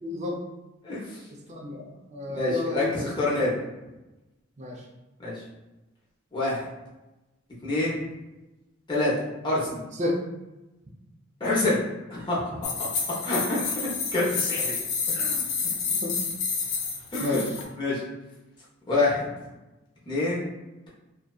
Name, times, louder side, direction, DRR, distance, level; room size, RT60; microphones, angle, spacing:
voice 1, 0.0-0.4 1.5-2.9 4.6-4.8 10.0-10.1 16.0-16.2 17.2-17.4, left 2 dB, 35° right, -1 dB, 0.5 m, -30 dB
voice 2, 0.8-1.2 2.3-3.6 5.2-5.3 6.3-6.7 7.6-8.0 8.9-9.1 9.4-9.8 11.4-11.8 12.1-12.9 13.2-13.8 14.1-14.7 17.1-17.4 17.8-18.0 18.9-19.3 20.1-20.4, left 2 dB, 25° left, -7 dB, 0.7 m, -26 dB
sound 1, 12.6-17.6, left 5 dB, 75° left, 0.5 m, -29 dB
2.6 x 2.2 x 2.3 m, 1.0 s
head